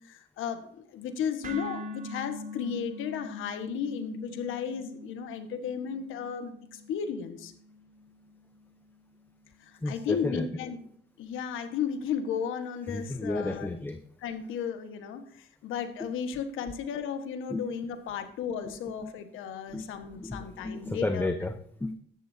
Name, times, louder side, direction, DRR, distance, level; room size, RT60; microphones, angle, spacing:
voice 1, 0.0-7.5 9.6-10.8 11.2-13.7 14.2-21.3, left 7 dB, 90° left, 8 dB, 1.5 m, -34 dB
sound 1, 1.4-9.5, left 1 dB, 45° right, 3.8 m, -44 dB
voice 2, 9.8-10.5 12.9-14.0 16.0-16.1 17.5-17.6 19.7-19.9 20.2-21.9, left 2 dB, 10° left, 8 dB, 0.9 m, -32 dB
14.0 x 11.0 x 2.8 m, 0.64 s
cardioid pair, 90°, 20 cm